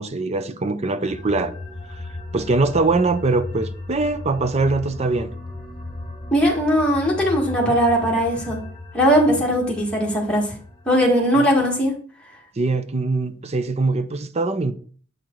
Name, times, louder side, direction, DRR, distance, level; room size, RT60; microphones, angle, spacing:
voice 1, 0.0-1.5 2.3-5.3 11.4-11.5 12.6-14.7, right 3 dB, 35° right, 0.5 m, -22 dB
sound 1, 1.1-11.9, left 2 dB, 25° left, 1.6 m, -36 dB
voice 2, 6.3-8.6 8.9-10.5 10.8-11.9, equal, 5° left, 1.7 m, -19 dB
7.9 x 4.6 x 3.8 m
head